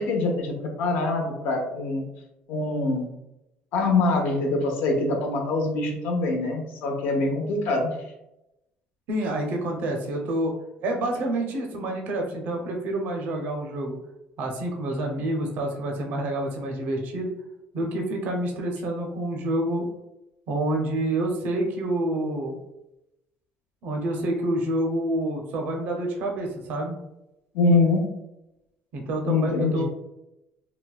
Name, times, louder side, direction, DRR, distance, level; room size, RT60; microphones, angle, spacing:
voice 1, 0.0-2.0 2.5-3.1 3.7-7.9 27.5-28.0 29.2-29.8, left 3 dB, 65° left, 2 dB, 0.7 m, -24 dB
voice 2, 9.1-10.5 10.8-13.9 14.4-17.3 17.7-19.9 20.5-22.6 23.8-27.0 28.9-29.8, right 1 dB, 50° right, 1 dB, 0.5 m, -28 dB
3.8 x 2.1 x 2.2 m, 0.89 s
cardioid pair, 175°, 4 cm